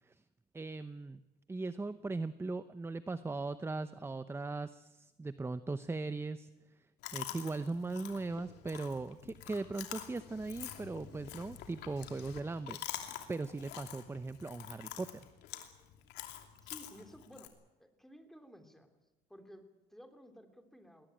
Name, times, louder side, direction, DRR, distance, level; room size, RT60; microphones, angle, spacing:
voice 1, 0.5-1.2 1.5-6.5 7.1-15.3, right 3 dB, 15° right, 13 dB, 0.7 m, -39 dB
Chewing mastication, 7.0-17.5, left 12 dB, 85° left, 2.8 m, -47 dB
voice 2, 16.7-17.5 17.8-18.9 19.3-21.1, equal, ahead, 6 dB, 3.2 m, -55 dB
20.5 x 19.0 x 9.1 m, 1.1 s
cardioid pair, 110°, 17 cm